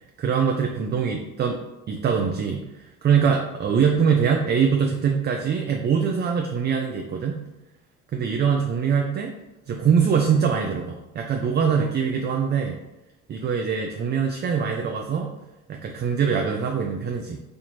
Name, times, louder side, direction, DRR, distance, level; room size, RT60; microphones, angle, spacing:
voice 1, 0.2-1.6 1.9-7.4 8.1-9.3 9.7-12.8 13.3-15.3 15.7-17.4, right 6 dB, 35° right, 2 dB, 0.4 m, -23 dB
4.3 x 2.5 x 2.9 m, 0.96 s
supercardioid pair, 75°, 30 cm